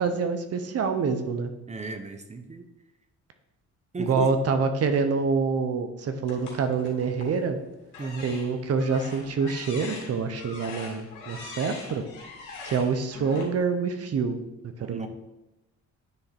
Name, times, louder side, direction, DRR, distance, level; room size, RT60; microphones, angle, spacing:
voice 1, 0.0-1.5 4.0-7.6 8.2-12.0 12.6-14.4 14.6-15.1, right 5 dB, 55° right, 8 dB, 0.8 m, -26 dB
voice 2, 1.7-2.6 3.9-4.3 8.0-8.3 14.8-15.1, right 3 dB, 25° right, 8 dB, 0.8 m, -35 dB
sound 1, 6.3-7.4 7.9-13.4, left 3 dB, 85° left, 2.3 m, -42 dB
9.8 x 3.6 x 4.3 m, 0.94 s
cardioid pair, 90°, 30 cm